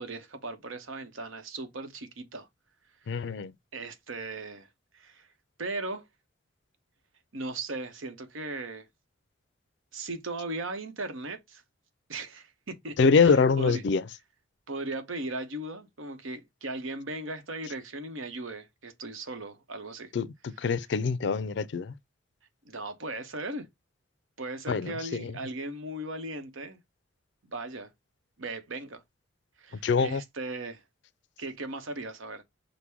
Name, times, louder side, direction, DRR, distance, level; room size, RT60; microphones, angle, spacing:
voice 1, 0.0-2.5 3.1-3.3 3.7-4.7 4.9-5.3 5.6-6.1 7.3-8.9 9.9-11.6 12.1-13.8 14.7-20.1 20.6-20.8 22.6-23.7 24.4-26.8 27.4-27.9 28.4-29.0 29.6-30.8 31.4-32.4, right 2 dB, 90° right, 0.9 m, -37 dB
voice 2, 3.1-3.5 13.0-14.0 20.1-20.3 20.6-21.9 24.7-25.3 29.8-30.2, left 5 dB, 60° left, 0.4 m, -24 dB
5.9 x 2.1 x 3.4 m
head